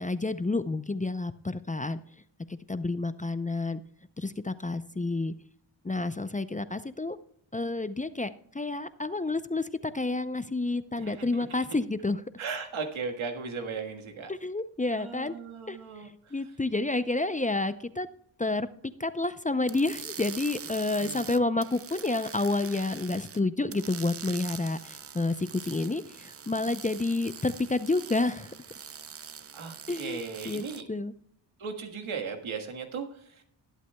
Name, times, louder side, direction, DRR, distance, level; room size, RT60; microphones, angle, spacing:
voice 1, 0.0-2.0 2.7-3.8 4.2-5.3 5.8-7.2 7.5-8.3 8.5-12.2 14.3-15.3 15.7-15.8 16.3-18.1 18.4-18.7 19.0-28.5 29.9-30.2 30.5-31.1, left 2 dB, 15° left, 13 dB, 0.5 m, -29 dB
voice 2, 10.9-11.6 12.4-14.3 14.9-16.4 21.0-21.4 29.5-30.9 31.6-33.4, right 5 dB, 90° right, 4 dB, 1.7 m, -37 dB
sound 1, 19.7-23.4 23.7-30.8, right 7 dB, 30° right, 0.5 m, -44 dB
19.5 x 8.3 x 2.3 m, 0.65 s
cardioid pair, 65°, 47 cm